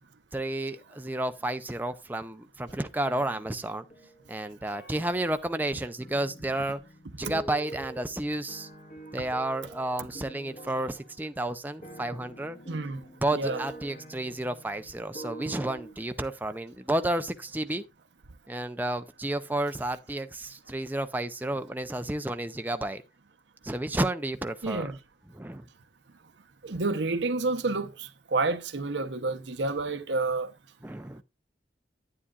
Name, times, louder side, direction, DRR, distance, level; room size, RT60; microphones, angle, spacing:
voice 1, 0.3-3.8 4.3-6.8 7.2-8.7 9.1-12.6 13.2-17.8 18.5-23.0 23.6-24.9 25.3-25.6 30.8-31.2, right 1 dB, 10° right, 0.5 m, -31 dB
sound 1, 2.6-4.4 4.7-15.9, right 1 dB, 40° left, 1.4 m, -46 dB
voice 2, 12.7-13.0 13.3-13.6 24.6-25.0 26.6-30.5, right 3 dB, 80° right, 0.9 m, -29 dB
9.8 x 9.7 x 2.4 m
head